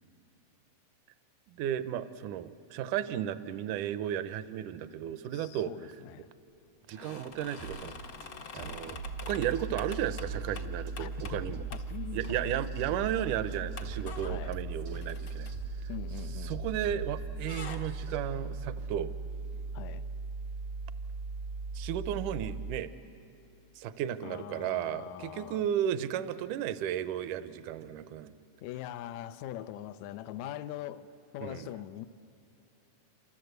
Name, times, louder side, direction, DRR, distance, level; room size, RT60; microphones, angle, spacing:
voice 1, 1.6-5.7 6.9-8.0 8.5-11.6 12.1-15.5 15.8-15.9 16.4-19.1 21.7-22.9 23.8-28.3 31.4-31.7, right 10 dB, 75° right, 2.2 m, -34 dB
voice 2, 5.3-6.3 11.0-11.1 11.7-12.6 14.2-14.6 15.9-16.6 19.7-20.1 24.2-25.7 28.6-31.1 31.3-32.1, left 12 dB, 75° left, 1.8 m, -42 dB
sound 1, 6.9-11.4 11.7-11.9 12.2-12.7 13.1-13.2 13.7-16.8 17.1-17.9, left 5 dB, 55° left, 1.3 m, -46 dB
sound 2, 7.6-18.2, right 4 dB, 90° right, 3.6 m, -47 dB
sound 3, 9.0-22.8, right 3 dB, 55° right, 1.2 m, -38 dB
28.5 x 26.0 x 8.0 m
omnidirectional pair, 3.9 m